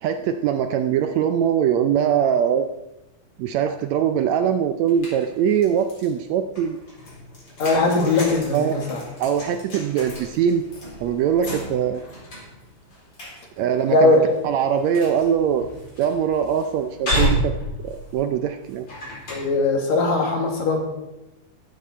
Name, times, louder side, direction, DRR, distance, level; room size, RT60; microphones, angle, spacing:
voice 1, 0.0-2.7 3.4-6.8 8.5-8.8 9.2-10.6 11.0-12.0 13.6-14.1 14.4-15.7 16.0-17.6 17.8-18.9, right 8 dB, 80° right, 8 dB, 1.6 m, -22 dB
sound 1, 4.8-6.1 6.5-19.4, equal, 35° left, 4.6 m, -32 dB
voice 2, 7.6-9.0 13.9-14.2 19.3-20.9, left 2 dB, 60° left, 2 dB, 3.3 m, -19 dB
14.0 x 12.5 x 4.3 m, 0.98 s
omnidirectional pair, 3.8 m